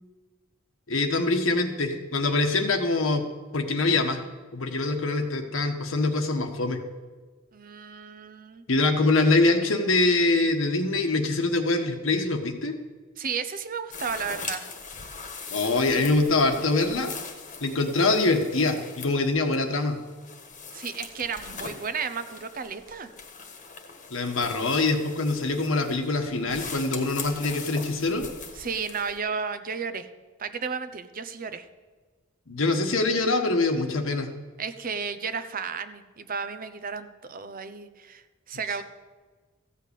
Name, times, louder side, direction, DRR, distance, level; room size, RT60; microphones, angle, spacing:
voice 1, 0.9-3.2 3.5-4.2 4.5-6.8 8.7-12.8 15.5-17.1 17.6-20.0 24.1-28.3 32.5-34.3, left 2 dB, 90° left, 4 dB, 1.4 m, -24 dB
voice 2, 7.5-8.6 13.2-14.6 20.7-23.1 28.6-30.1 30.4-31.7 34.6-38.8, right 6 dB, 45° right, 11 dB, 0.8 m, -33 dB
sound 1, 13.9-29.2, left 5 dB, 40° left, 1.4 m, -41 dB
14.5 x 5.7 x 8.3 m, 1.4 s
head